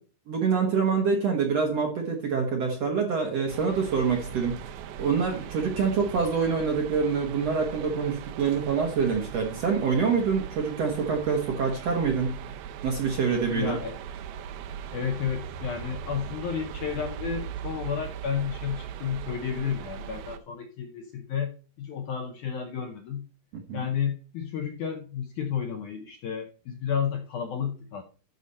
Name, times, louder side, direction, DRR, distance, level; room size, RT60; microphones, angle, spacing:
voice 1, 0.3-4.6 5.0-12.4 12.8-13.8 23.7-23.9, right 5 dB, 60° right, 1 dB, 1.7 m, -26 dB
sound 1, 3.5-20.4, right 8 dB, 75° right, 2.6 m, -39 dB
voice 2, 13.5-14.0 14.9-23.3 23.7-28.0, left 7 dB, 75° left, 5 dB, 1.8 m, -32 dB
12.0 x 5.0 x 4.2 m, 0.37 s
omnidirectional pair, 4.6 m